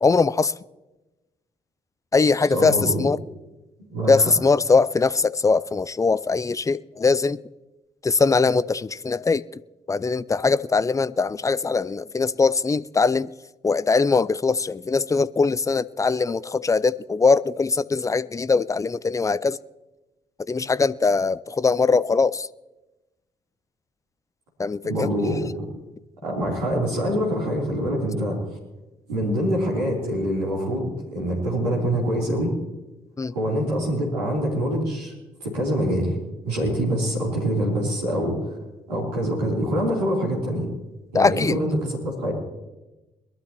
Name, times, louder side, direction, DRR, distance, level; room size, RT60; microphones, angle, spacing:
voice 1, 0.0-0.5 2.1-3.2 4.1-7.4 8.0-9.4 9.9-13.3 13.6-19.6 20.5-22.5 24.6-25.1 33.2-33.3 41.1-41.6, left 4 dB, 15° left, 0.4 m, -21 dB
voice 2, 2.5-3.0 3.9-4.3 24.8-25.6 26.2-28.4 29.1-32.5 33.3-35.1 35.4-36.2 36.5-38.6 38.9-40.7 41.1-42.3, equal, 85° right, 3.4 m, -25 dB
22.0 x 13.0 x 3.0 m
figure-of-eight pair, 40°, 20 cm